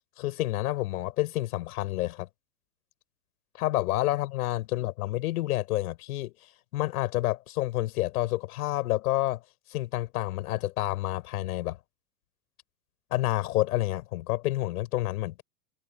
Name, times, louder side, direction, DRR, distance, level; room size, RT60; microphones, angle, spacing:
voice 1, 0.2-2.3 3.6-6.3 6.7-9.4 9.7-11.8 13.1-15.4, left 16 dB, 65° left, 7.0 m, -29 dB
hypercardioid pair, 105°, 48 cm